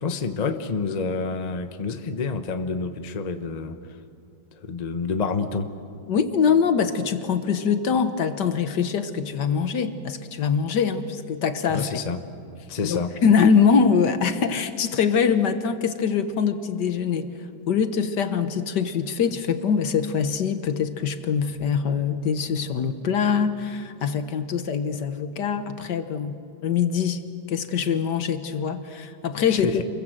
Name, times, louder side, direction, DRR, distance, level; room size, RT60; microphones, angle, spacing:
voice 1, 0.0-3.8 4.6-5.7 11.7-12.2 12.7-13.1 29.5-29.8, left 4 dB, 30° left, 7 dB, 0.9 m, -28 dB
voice 2, 6.1-12.0 12.8-17.3 17.7-27.2 27.5-29.8, left 6 dB, 65° left, 9 dB, 1.6 m, -23 dB
28.0 x 22.0 x 7.7 m, 2.4 s
omnidirectional pair, 2.1 m